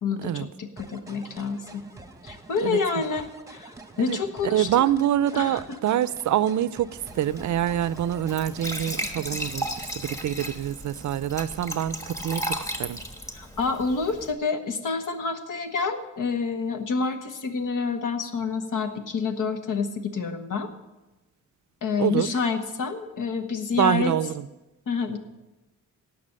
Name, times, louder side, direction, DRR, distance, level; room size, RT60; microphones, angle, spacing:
voice 1, 0.0-1.8 2.2-4.8 5.3-5.6 13.3-20.7 21.8-24.1 24.9-25.2, left 4 dB, 75° left, 7 dB, 1.3 m, -28 dB
sound 1, 0.8-10.4, right 2 dB, 10° right, 1.0 m, -46 dB
voice 2, 4.5-6.9 7.2-13.0 22.0-22.3 23.8-24.4, right 11 dB, 65° right, 18 dB, 0.5 m, -25 dB
Glass / Trickle dribble / Fill (with liquid), 7.0-14.3, equal, 10° left, 1.3 m, -35 dB
17.0 x 6.0 x 6.5 m, 1.0 s
wide cardioid pair, 120°, 31 cm